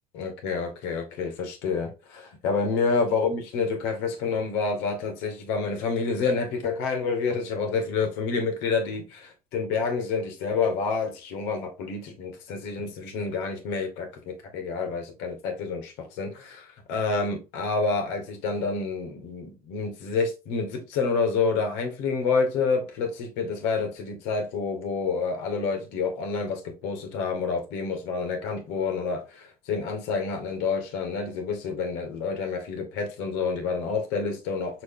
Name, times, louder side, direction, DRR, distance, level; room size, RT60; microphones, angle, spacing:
voice 1, 0.1-34.8, left 4 dB, 70° left, 2.1 m, -28 dB
6.8 x 3.7 x 3.9 m
hypercardioid pair, 60°, 19 cm